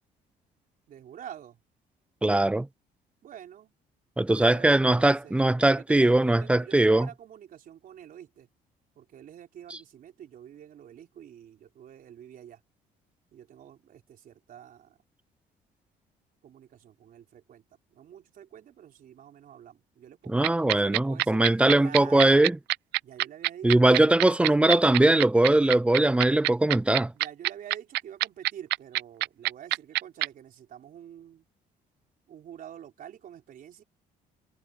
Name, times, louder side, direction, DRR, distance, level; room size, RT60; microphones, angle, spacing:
voice 1, 0.9-1.6 3.2-3.8 4.4-8.5 9.0-12.6 13.3-15.0 16.4-17.6 17.9-21.4 21.7-22.6 23.0-24.6 27.1-31.5 32.3-33.8, right 10 dB, 55° right, 4.2 m, -47 dB
voice 2, 2.2-2.7 4.2-7.1 20.3-22.6 23.6-27.1, right 1 dB, 5° right, 0.4 m, -21 dB
sound 1, 20.4-30.3, right 20 dB, 80° right, 0.4 m, -25 dB
cardioid pair, 110°, 17 cm